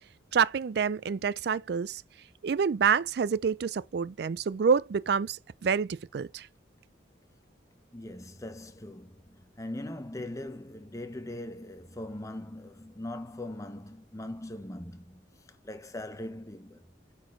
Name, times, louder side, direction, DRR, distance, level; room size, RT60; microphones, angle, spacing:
voice 1, 0.3-2.0 2.4-6.5, right 6 dB, 60° right, 0.4 m, -27 dB
voice 2, 7.9-15.3 15.6-16.9, left 1 dB, 15° left, 0.8 m, -40 dB
8.9 x 4.3 x 3.1 m
head